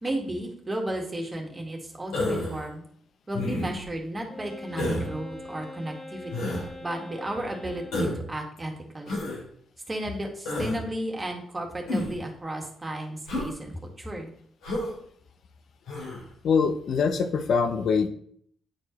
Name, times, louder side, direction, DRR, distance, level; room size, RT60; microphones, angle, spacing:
voice 1, 0.0-2.8 3.3-9.2 9.9-14.3, right 1 dB, 25° right, 2 dB, 1.9 m, -34 dB
Human voice, 2.1-2.6 3.3-3.8 4.8-5.1 6.3-6.6 7.9-8.2 9.1-9.4 10.4-10.8 11.9-12.2 13.3-13.5 14.6-14.9 15.9-16.2, left 1 dB, 85° left, 3.0 m, -29 dB
Wind instrument woodwind instrument, 4.3-8.3, left 2 dB, 20° left, 2.7 m, -43 dB
voice 2, 16.4-18.1, left 5 dB, 65° left, 8 dB, 0.8 m, -23 dB
8.8 x 4.4 x 3.2 m, 0.63 s
supercardioid pair, 55°, 0 cm